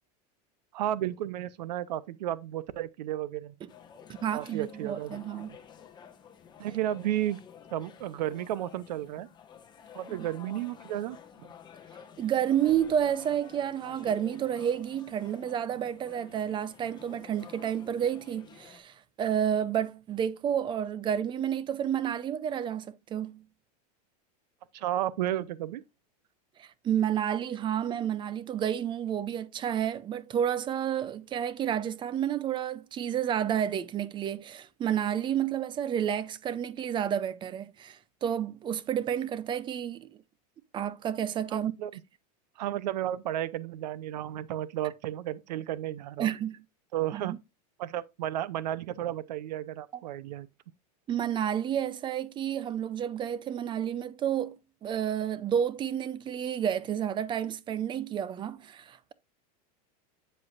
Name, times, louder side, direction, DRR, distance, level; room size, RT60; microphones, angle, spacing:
voice 1, 0.7-3.5 4.3-5.2 6.6-7.4 7.7-9.3 9.9-11.5 24.7-25.8 41.5-41.9 42.6-46.3 46.9-47.4 47.8-50.5, right 12 dB, 90° right, 0.7 m, -33 dB
sound 1, 3.7-18.8, left 8 dB, 20° left, 1.2 m, -51 dB
voice 2, 4.2-5.6 10.1-10.3 12.2-23.5 26.6-40.1 40.7-41.7 46.2-46.6 47.1-47.4 51.1-54.5 54.8-59.1, right 9 dB, 25° right, 0.5 m, -30 dB
7.9 x 7.7 x 2.5 m
supercardioid pair, 140°, 21 cm